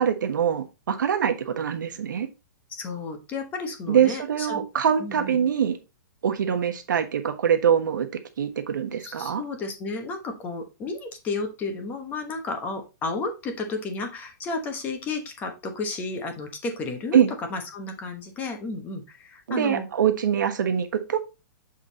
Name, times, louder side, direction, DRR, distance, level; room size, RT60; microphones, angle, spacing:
voice 1, 0.0-2.3 3.9-5.8 6.2-8.1 8.4-9.4 17.1-17.3 19.5-21.2, right 8 dB, 85° right, 1.2 m, -23 dB
voice 2, 2.7-4.6 5.0-5.4 9.0-17.2 17.5-19.9, left 3 dB, 15° left, 1.1 m, -32 dB
7.3 x 3.8 x 4.1 m
hypercardioid pair, 165°, 10 cm